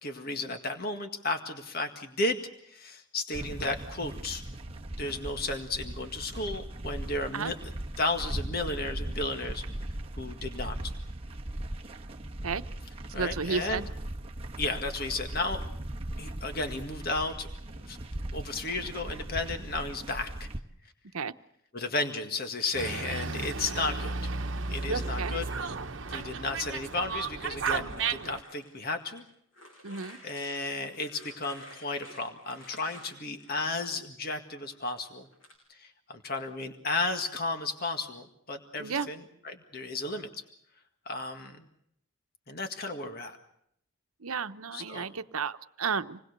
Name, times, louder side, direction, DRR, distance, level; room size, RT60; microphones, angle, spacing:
voice 1, 0.0-7.6 8.0-9.6 10.2-10.9 13.1-13.8 14.6-15.6 16.2-17.5 17.8-18.0 18.3-20.5 21.7-24.3 24.7-25.5 26.1-29.2 30.2-35.3 35.7-40.4 41.1-41.7 42.5-43.4 44.7-45.1, left 2 dB, 45° left, 6 dB, 1.9 m, -34 dB
sound 1, 3.3-20.6, right 1 dB, 25° right, 1.2 m, -39 dB
voice 2, 13.1-13.9 21.1-21.3 25.2-25.3 29.8-30.2 38.7-39.1 44.2-46.2, right 5 dB, 90° right, 11 dB, 0.9 m, -32 dB
Dog, 22.7-28.4, right 4 dB, 60° right, 1.1 m, -33 dB
sound 2, 26.5-29.2 29.5-34.1 34.5-35.5, left 1 dB, 65° left, 7.4 m, -53 dB
27.5 x 20.5 x 6.7 m, 0.72 s
head